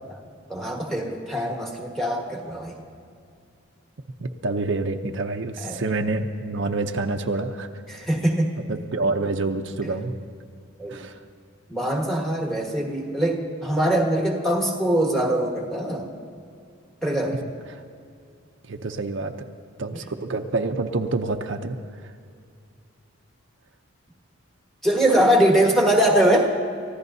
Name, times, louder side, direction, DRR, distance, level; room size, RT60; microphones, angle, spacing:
voice 1, 0.5-2.8 5.6-5.8 7.9-8.5 9.8-9.9 10.8-11.0 11.7-16.1 17.0-17.4 19.9-20.0 24.8-26.5, right 1 dB, ahead, 0 dB, 1.5 m, -22 dB
voice 2, 4.2-7.7 8.7-10.1 10.9-11.2 17.7-17.8 18.7-19.3 19.8-22.1, right 3 dB, 60° right, 5 dB, 0.7 m, -27 dB
29.5 x 15.0 x 2.7 m, 2.4 s
head